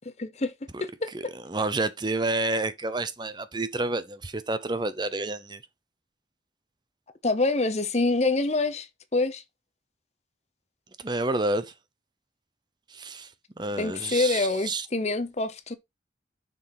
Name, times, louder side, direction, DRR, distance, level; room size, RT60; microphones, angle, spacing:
voice 1, 0.2-0.5 0.8-1.3 7.2-9.4 13.8-15.7, left 3 dB, 35° left, 0.9 m, -26 dB
voice 2, 1.1-5.6 11.0-11.7 12.9-13.3 13.6-14.9, right 2 dB, 25° right, 0.7 m, -29 dB
7.2 x 6.2 x 4.0 m
head